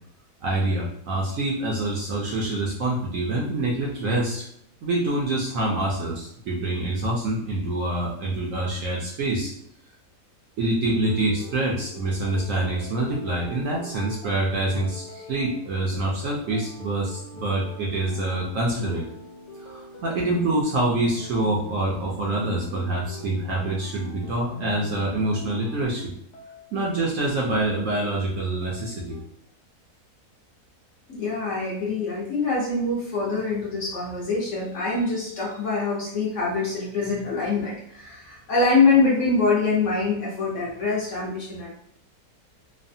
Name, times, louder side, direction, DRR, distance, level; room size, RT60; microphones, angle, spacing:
voice 1, 0.4-4.4 4.8-9.5 10.6-19.0 19.6-26.1 26.7-29.2, right 2 dB, 65° right, -3 dB, 0.8 m, -26 dB
sound 1, 10.9-29.2, left 3 dB, 80° left, 1.2 m, -43 dB
voice 2, 31.2-41.7, left 3 dB, 60° left, -5 dB, 0.9 m, -24 dB
3.2 x 2.1 x 2.6 m, 0.72 s
omnidirectional pair, 1.7 m